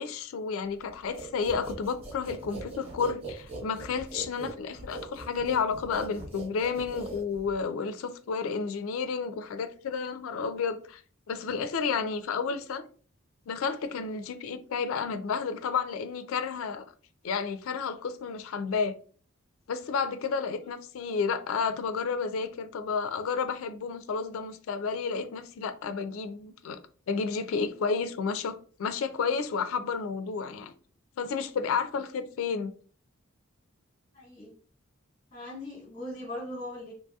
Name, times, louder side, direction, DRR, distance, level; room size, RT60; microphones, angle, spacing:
voice 1, 0.0-11.0 11.3-12.8 13.5-16.8 17.2-18.9 19.7-26.8 27.1-30.7 31.2-32.7, left 5 dB, 70° left, 0.3 m, -31 dB
sound 1, 1.1-7.6, right 3 dB, 30° right, 0.8 m, -41 dB
voice 2, 34.1-34.5 35.3-36.9, left 1 dB, 30° left, 1.1 m, -39 dB
3.0 x 2.6 x 2.3 m
head